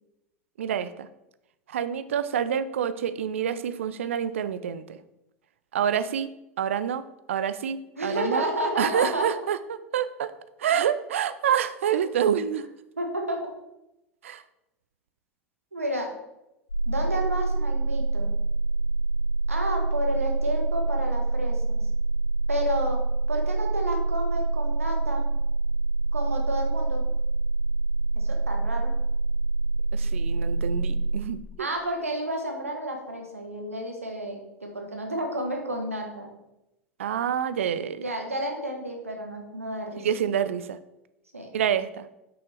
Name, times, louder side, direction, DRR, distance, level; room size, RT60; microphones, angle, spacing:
voice 1, 0.6-1.1 1.7-5.0 5.7-6.3 6.6-7.0 7.3-8.4 8.8-10.3 10.6-12.7 14.2-14.4 29.9-31.7 37.0-38.0 40.0-40.8 41.5-42.1, right 8 dB, 65° right, 13 dB, 0.4 m, -27 dB
voice 2, 8.0-9.3 13.0-13.4 15.7-16.1 16.9-18.3 19.5-21.8 22.5-25.3 26.1-27.0 28.1-28.9 31.6-36.3 37.9-40.1 41.3-41.5, right 1 dB, 80° right, 2 dB, 1.2 m, -31 dB
sound 1, 16.7-31.2, right 2 dB, 85° left, 1.1 m, -26 dB
6.1 x 5.8 x 3.3 m, 0.90 s
figure-of-eight pair, 80°, 7 cm